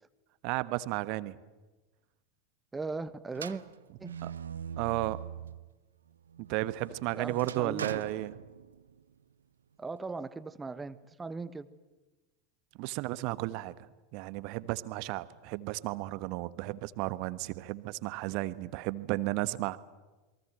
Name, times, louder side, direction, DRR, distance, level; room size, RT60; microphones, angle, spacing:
voice 1, 0.4-1.4 4.2-4.3 4.8-5.2 6.5-8.3 12.8-13.7 14.1-19.8, right 18 dB, 45° right, 15 dB, 1.2 m, -33 dB
voice 2, 2.7-3.6 4.0-4.2 7.1-7.9 9.8-11.7, right 3 dB, 15° right, 14 dB, 1.3 m, -38 dB
sound 1, 3.3-5.7 6.2-9.0, right 8 dB, 75° right, 0.8 m, -42 dB
28.5 x 22.5 x 7.8 m, 1.2 s
figure-of-eight pair, 85°, 0 cm